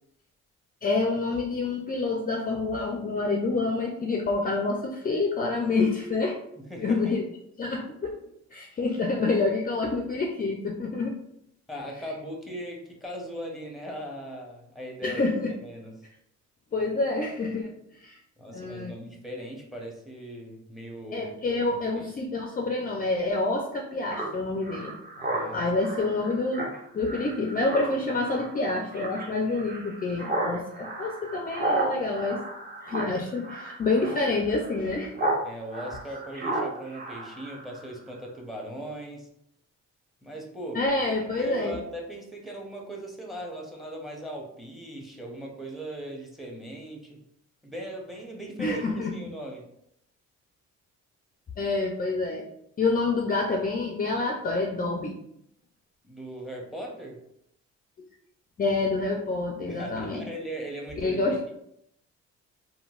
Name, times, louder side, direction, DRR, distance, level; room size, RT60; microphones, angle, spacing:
voice 1, 0.8-6.4 6.8-7.2 7.6-8.2 8.5-11.2 15.0-15.5 16.7-18.2 18.5-18.9 21.1-24.9 25.5-26.7 26.9-32.4 32.9-35.1 40.7-41.8 48.6-49.1 51.6-52.4 52.8-55.2 58.6-60.3 61.0-61.4, left 3 dB, 30° left, 1 dB, 0.4 m, -27 dB
voice 2, 6.6-7.0 11.7-15.3 15.6-15.9 18.4-21.5 21.9-22.0 25.2-25.7 35.4-39.3 40.2-40.8 41.3-47.2 47.6-48.8 49.1-49.7 56.0-57.2 59.7-61.5, right 1 dB, ahead, 0 dB, 0.7 m, -38 dB
Speech synthesizer, 24.1-35.4 35.7-37.9, right 2 dB, 30° right, 0.8 m, -33 dB
3.7 x 2.1 x 2.4 m, 0.75 s
cardioid pair, 90°, 30 cm